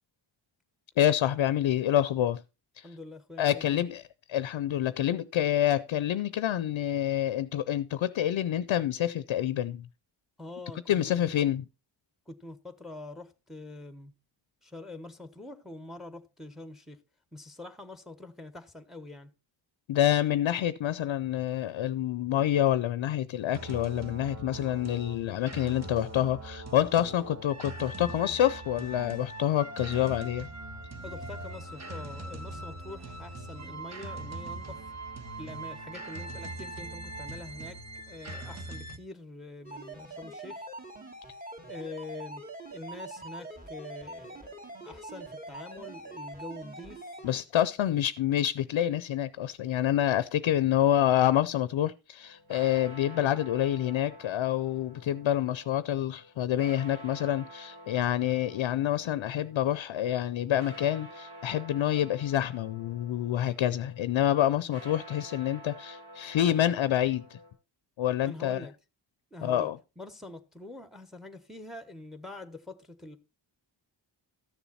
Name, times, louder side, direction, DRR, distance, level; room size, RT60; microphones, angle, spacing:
voice 1, 1.0-2.4 2.8-3.0 3.4-4.0 4.3-9.9 10.9-11.6 19.9-30.5 47.2-67.4 68.0-68.7 69.4-69.8, left 11 dB, 80° left, 0.6 m, -27 dB
voice 2, 2.8-3.8 10.4-11.3 12.3-14.1 14.6-17.0 17.3-19.3 31.0-34.8 35.4-37.8 38.1-40.7 41.7-42.4 42.7-44.6 44.8-47.0 68.2-68.7 69.3-69.7 70.0-73.2, left 2 dB, ahead, 1.1 m, -45 dB
sound 1, 23.5-39.0, right 2 dB, 35° right, 1.3 m, -41 dB
sound 2, 39.6-47.3, right 2 dB, 20° right, 2.5 m, -43 dB
sound 3, 52.2-67.5, right 1 dB, 85° right, 7.9 m, -50 dB
13.0 x 7.1 x 4.1 m
wide cardioid pair, 80°, 45 cm